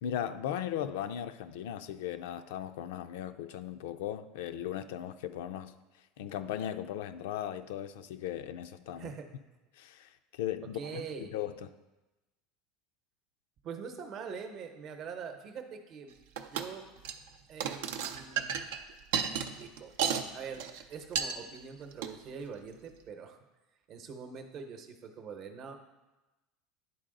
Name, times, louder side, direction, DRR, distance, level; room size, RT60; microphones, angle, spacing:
voice 1, 0.0-5.7 6.2-9.1 9.7-11.7, left 10 dB, 80° left, 10 dB, 0.4 m, -37 dB
voice 2, 8.9-9.3 10.7-11.3 13.6-16.1 16.4-16.8 17.5-18.5 19.1-19.9 20.3-23.4 23.9-25.9, right 6 dB, 45° right, 6 dB, 0.8 m, -44 dB
sound 1, 16.4-16.7 17.0-17.3 17.6-20.3 20.5-20.8 21.1-21.3 21.9-22.1, right 7 dB, 85° right, 0.5 m, -33 dB
10.0 x 3.9 x 3.8 m, 1.1 s
supercardioid pair, 125°, 0 cm